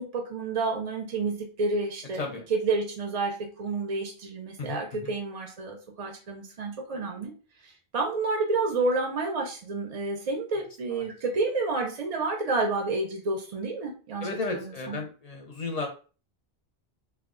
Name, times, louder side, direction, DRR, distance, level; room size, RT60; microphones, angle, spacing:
voice 1, 0.0-2.2 2.5-7.3 7.6-15.0, right 3 dB, 45° right, 1 dB, 0.5 m, -30 dB
voice 2, 4.6-5.1 10.9-11.1 14.2-15.9, left 3 dB, 50° left, 2 dB, 0.5 m, -34 dB
2.3 x 2.2 x 3.6 m, 0.37 s
omnidirectional pair, 1.0 m